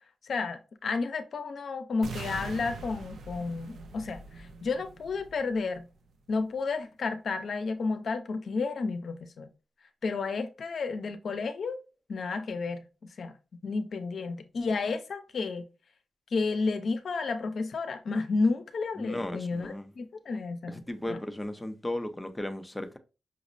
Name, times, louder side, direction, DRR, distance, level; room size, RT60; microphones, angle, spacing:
voice 1, 0.2-5.9 6.3-9.5 10.0-11.8 12.1-12.8 13.2-13.4 13.6-15.7 16.3-20.8 21.1-21.2, left 4 dB, 60° left, 0.5 m, -31 dB
sound 1, 2.0-6.0, right 3 dB, 80° right, 0.4 m, -43 dB
voice 2, 19.0-19.9 20.7-23.0, left 1 dB, 10° left, 0.5 m, -35 dB
5.8 x 2.0 x 2.5 m
wide cardioid pair, 125°, 0 cm